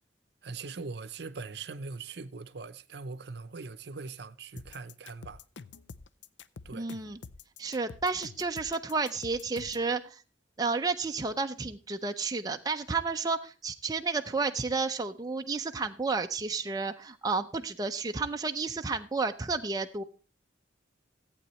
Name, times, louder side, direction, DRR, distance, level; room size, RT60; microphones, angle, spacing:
voice 1, 0.4-5.4 6.6-6.9, right 4 dB, 60° right, 0.7 m, -41 dB
sound 1, 4.6-9.9, left 4 dB, 75° left, 0.5 m, -47 dB
voice 2, 6.7-7.2 7.6-10.2 10.6-20.0, right 4 dB, 20° right, 0.5 m, -31 dB
14.5 x 8.6 x 3.1 m
head